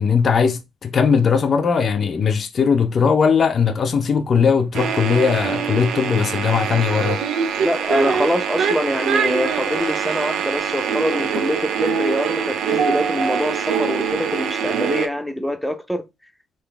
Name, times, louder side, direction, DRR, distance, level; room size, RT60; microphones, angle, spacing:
voice 1, 0.0-7.2, left 6 dB, 50° left, 0.5 m, -19 dB
sound 1, 4.7-15.1, right 6 dB, 80° right, 0.6 m, -23 dB
voice 2, 7.6-16.0, equal, ahead, 0.7 m, -24 dB
3.9 x 2.5 x 3.2 m
cardioid pair, 90°, 0 cm